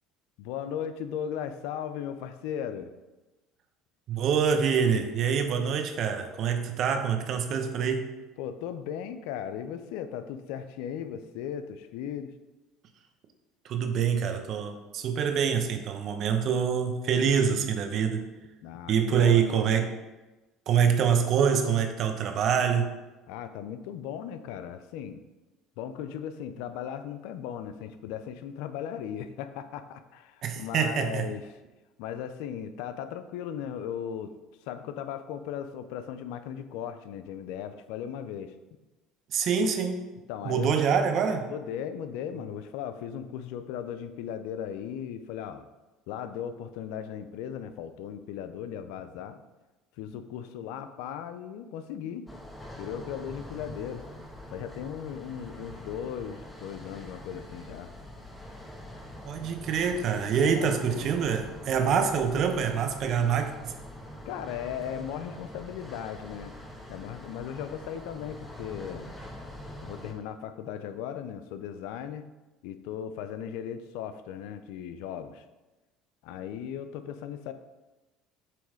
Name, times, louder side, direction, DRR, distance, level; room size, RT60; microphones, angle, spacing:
voice 1, 0.4-2.9 8.4-12.3 18.6-19.4 23.3-25.2 25.8-31.4 32.0-34.3 34.7-38.6 40.3-41.0 41.5-45.6 46.1-49.4 50.0-52.2 52.8-54.0 54.5-57.9 60.4-61.1 64.2-66.5 66.9-69.1 69.8-72.2 72.6-75.4 76.2-77.5, left 9 dB, 80° left, 10 dB, 0.5 m, -37 dB
voice 2, 4.1-8.1 13.7-18.3 18.9-19.9 20.7-23.0 30.4-31.3 39.3-40.0 40.4-41.5 59.3-63.7, right 7 dB, 55° right, 6 dB, 0.9 m, -25 dB
sound 1, 52.3-70.1, left 1 dB, 5° left, 1.3 m, -44 dB
7.6 x 3.1 x 4.9 m, 1.1 s
supercardioid pair, 95°, 0 cm